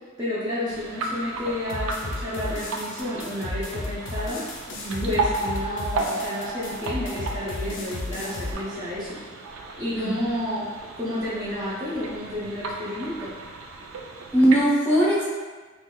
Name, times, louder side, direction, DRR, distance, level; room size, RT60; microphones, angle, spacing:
voice 1, 0.2-4.4 5.0-9.2 9.8-10.7 11.0-13.3, left 1 dB, 20° right, -9 dB, 0.6 m, -31 dB
sound 1, 0.7-14.6, right 3 dB, 65° right, 0.4 m, -34 dB
sound 2, 1.7-8.5, left 2 dB, 60° left, 0.5 m, -33 dB
voice 2, 14.3-15.2, right 1 dB, 10° left, -8 dB, 0.8 m, -20 dB
3.9 x 3.1 x 2.2 m, 1.3 s
head